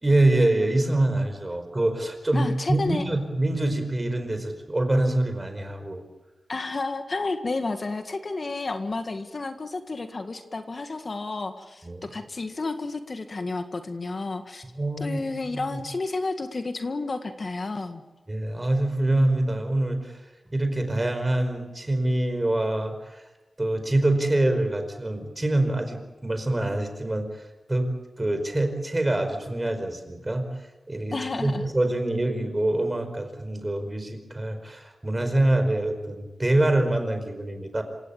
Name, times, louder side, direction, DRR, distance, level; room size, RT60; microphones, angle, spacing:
voice 1, 0.0-6.0 11.8-12.0 14.7-15.8 18.3-20.2 20.5-23.2 23.6-27.3 27.7-27.9 28.2-30.4 30.9-37.8, right 1 dB, 25° right, 7 dB, 4.9 m, -25 dB
voice 2, 2.3-3.1 6.5-14.6 15.0-18.0 31.1-31.6, left 3 dB, 50° left, 7 dB, 1.8 m, -31 dB
27.5 x 17.0 x 8.7 m, 1.1 s
wide cardioid pair, 80°, 0 cm